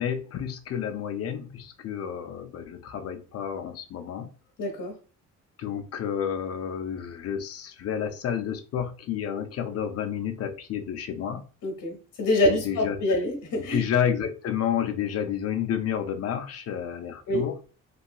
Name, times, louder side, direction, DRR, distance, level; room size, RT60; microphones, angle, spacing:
voice 1, 0.0-4.3 5.6-11.4 12.4-13.2 13.6-17.6, left 8 dB, 50° left, 8 dB, 0.4 m, -30 dB
voice 2, 4.6-4.9 11.6-13.8 17.3-17.4, left 1 dB, 70° left, 1 dB, 0.8 m, -26 dB
2.7 x 2.3 x 2.3 m, 0.37 s
cardioid pair, 145°, 32 cm